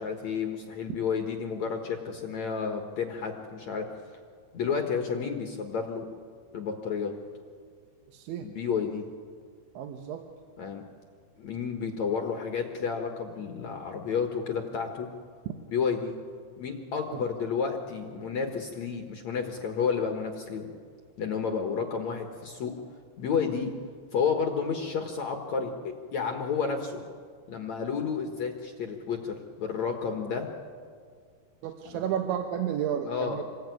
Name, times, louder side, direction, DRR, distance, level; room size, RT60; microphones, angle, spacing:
voice 1, 0.0-3.9 4.5-6.1 6.5-7.1 8.4-9.1 10.6-10.8 11.4-15.1 15.7-16.2 16.6-20.7 21.2-22.7 23.2-23.7 24.1-27.0 27.5-30.5 31.9-32.0 33.1-33.4, left 6 dB, 60° left, 4 dB, 1.9 m, -31 dB
voice 2, 8.1-8.5 9.8-10.2 17.1-17.2 31.6-33.4, right 9 dB, 85° right, 5 dB, 3.6 m, -32 dB
27.5 x 20.5 x 9.4 m, 2.1 s
omnidirectional pair, 5.2 m